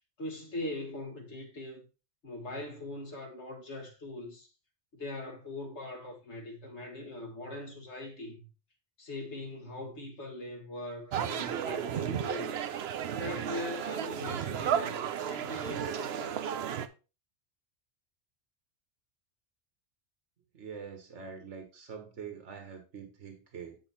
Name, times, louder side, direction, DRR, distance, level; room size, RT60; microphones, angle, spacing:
voice 1, 0.2-1.8 2.2-4.5 4.9-8.5 9.0-16.4, left 2 dB, 75° left, 1.9 m, -41 dB
sound 1, 11.1-16.9, right 9 dB, 65° right, 0.8 m, -33 dB
voice 2, 20.5-23.8, right 6 dB, 85° right, 1.7 m, -44 dB
8.4 x 4.9 x 4.2 m
omnidirectional pair, 1.2 m